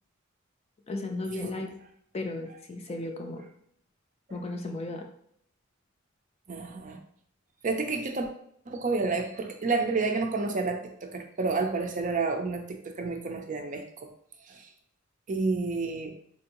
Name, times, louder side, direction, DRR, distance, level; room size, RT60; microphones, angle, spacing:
voice 1, 0.9-1.8 2.1-3.4 4.3-5.1, left 2 dB, 30° left, 3 dB, 0.4 m, -35 dB
voice 2, 6.5-7.0 7.6-8.3 8.7-14.1 14.5-14.7 15.3-16.2, right 3 dB, 40° right, 4 dB, 0.4 m, -30 dB
4.4 x 2.6 x 2.9 m, 0.65 s
head